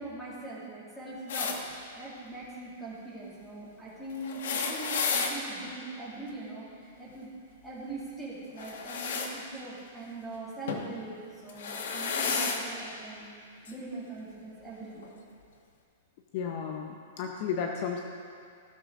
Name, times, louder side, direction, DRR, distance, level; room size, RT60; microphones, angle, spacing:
voice 1, 0.0-7.3 7.6-15.1, right 2 dB, ahead, -11 dB, 2.3 m, -42 dB
sound 1, 1.3-1.6 4.2-5.3 8.6-9.3 10.7-10.9 11.5-12.6 13.7-13.8 15.0-15.1, left 5 dB, 65° left, 1.2 m, -31 dB
voice 2, 16.3-18.0, left 7 dB, 35° left, 3 dB, 0.6 m, -33 dB
16.5 x 6.6 x 3.7 m, 2.3 s
supercardioid pair, 175°, 0 cm